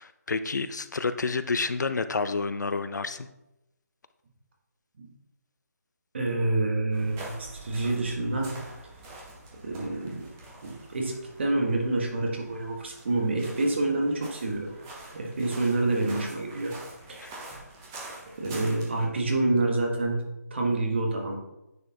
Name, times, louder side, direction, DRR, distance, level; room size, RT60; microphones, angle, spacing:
voice 1, 0.0-3.3 17.2-17.3, left 4 dB, 80° left, 12 dB, 0.5 m, -29 dB
voice 2, 6.1-8.6 9.6-10.3 10.6-14.7 15.1-16.8 17.1-17.2 18.4-20.2 20.5-21.4, right 2 dB, 40° right, 0 dB, 1.3 m, -27 dB
sound 1, 6.9-19.1, right 2 dB, 10° right, 0.6 m, -46 dB
9.4 x 4.2 x 2.8 m, 0.91 s
hypercardioid pair, 170°, 9 cm